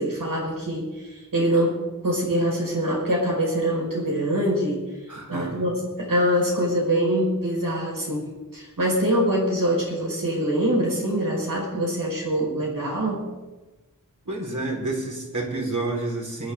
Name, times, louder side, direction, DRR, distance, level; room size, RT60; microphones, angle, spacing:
voice 1, 0.0-4.8 5.3-13.3, equal, 90° right, -2 dB, 5.1 m, -24 dB
voice 2, 5.1-5.7 14.2-16.5, right 2 dB, 65° right, -3 dB, 4.8 m, -29 dB
23.5 x 11.5 x 3.8 m, 1.2 s
wide cardioid pair, 55°, 32 cm